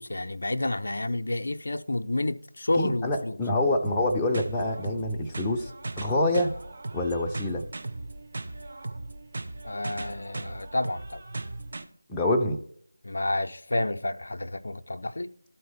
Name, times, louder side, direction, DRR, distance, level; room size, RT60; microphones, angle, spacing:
voice 1, 0.0-3.4 9.6-11.2 13.0-15.3, left 2 dB, 60° left, 0.4 m, -30 dB
voice 2, 2.7-5.7 6.0-6.5 6.9-7.7 12.1-12.6, left 1 dB, 10° left, 0.5 m, -26 dB
sound 1, 3.8-11.8, right 2 dB, 45° right, 0.8 m, -38 dB
12.5 x 4.4 x 3.4 m
figure-of-eight pair, 165°, 0 cm